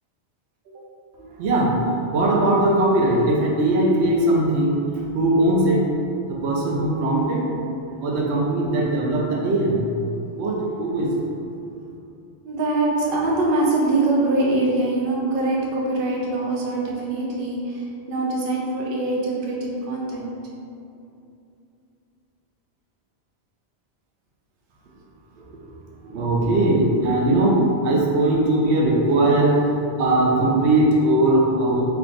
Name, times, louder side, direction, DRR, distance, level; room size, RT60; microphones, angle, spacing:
voice 1, 1.2-1.8 2.1-4.8 5.1-5.9 6.3-7.5 8.0-9.9 10.4-11.1 26.0-27.6 27.8-29.7 30.0-31.8, right 1 dB, 90° right, -2 dB, 0.9 m, -20 dB
voice 2, 12.4-20.4 25.4-25.8 26.1-26.3, right 2 dB, 60° right, -3 dB, 0.8 m, -24 dB
3.5 x 2.3 x 3.7 m, 2.5 s
omnidirectional pair, 1.1 m